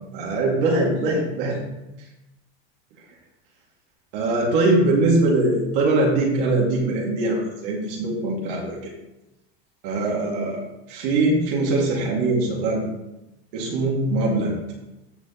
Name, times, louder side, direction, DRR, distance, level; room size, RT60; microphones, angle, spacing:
voice 1, 0.1-1.6 4.1-8.9 9.8-10.6 10.9-12.9 13.5-14.5, right 2 dB, 55° right, -2 dB, 2.4 m, -22 dB
14.0 x 6.3 x 3.1 m, 0.95 s
supercardioid pair, 165°, 31 cm